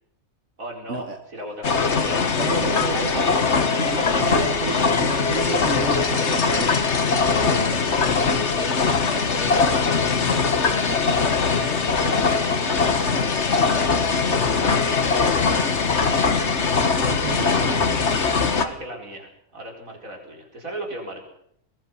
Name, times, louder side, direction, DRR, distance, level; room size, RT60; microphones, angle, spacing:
voice 1, 0.6-2.2 2.9-3.2 4.4-4.8 5.7-6.8 7.2-7.6 8.3-17.0 18.5-21.2, right 1 dB, 85° right, 1 dB, 5.2 m, -37 dB
sound 1, 1.6-18.7, left 4 dB, 55° left, 1.7 m, -21 dB
voice 2, 2.4-3.4 3.8-6.9 7.4-7.8 17.0-18.3, right 4 dB, 65° right, 4 dB, 2.0 m, -31 dB
sound 2, 5.1-6.8 7.1-7.3 7.6-7.7 7.9-8.0 8.2-8.3 8.5-9.1 9.4-9.6 9.9-15.4 16.0-16.1, left 2 dB, 30° left, 2.5 m, -41 dB
23.0 x 20.0 x 5.7 m, 0.71 s
omnidirectional pair, 1.4 m